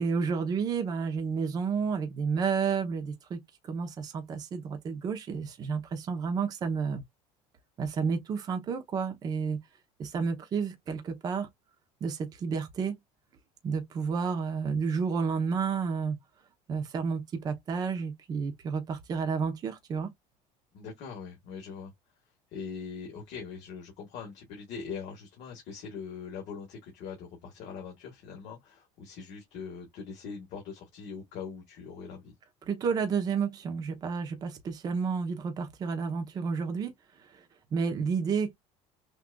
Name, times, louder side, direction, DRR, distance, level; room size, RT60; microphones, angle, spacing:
voice 1, 0.0-3.4 3.7-7.0 7.8-9.6 10.0-11.5 12.0-13.0 13.6-16.2 16.7-20.1 32.7-36.9 37.3-37.4 37.7-38.5, right 5 dB, 25° right, 0.8 m, -31 dB
voice 2, 20.7-21.9 22.5-32.3, left 5 dB, 55° left, 1.7 m, -42 dB
6.0 x 2.6 x 2.3 m
cardioid pair, 175°, 14 cm